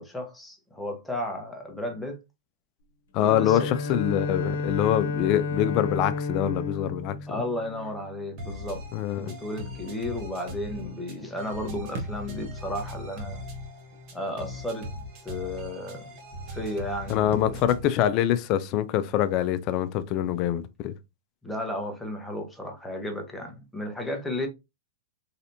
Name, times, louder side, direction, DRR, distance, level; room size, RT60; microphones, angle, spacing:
voice 1, 0.0-2.2 3.2-3.7 7.3-8.8 9.1-13.4 14.1-14.9 15.2-16.1 16.5-17.6 21.4-24.5, left 1 dB, 5° left, 0.8 m, -33 dB
voice 2, 3.1-7.2 8.9-9.3 17.1-20.9, left 11 dB, 40° left, 0.4 m, -25 dB
Bowed string instrument, 3.2-8.3, left 3 dB, 70° left, 0.9 m, -31 dB
sound 1, 8.4-18.0, left 1 dB, 40° right, 1.2 m, -40 dB
sound 2, 11.2-20.4, right 2 dB, 60° right, 1.0 m, -48 dB
3.3 x 2.7 x 2.7 m
hypercardioid pair, 125°, 0 cm